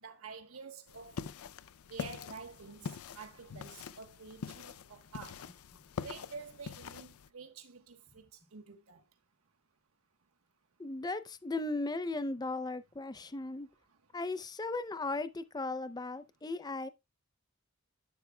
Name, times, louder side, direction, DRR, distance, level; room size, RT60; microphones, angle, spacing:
voice 1, 0.0-1.1 1.9-5.4 6.0-8.2 8.5-9.0, right 4 dB, 75° right, 1.2 m, -49 dB
sound 1, 0.9-7.3, left 6 dB, 75° left, 0.5 m, -44 dB
voice 2, 10.8-13.7 14.1-16.9, left 2 dB, 20° left, 0.5 m, -37 dB
10.5 x 7.7 x 2.2 m
head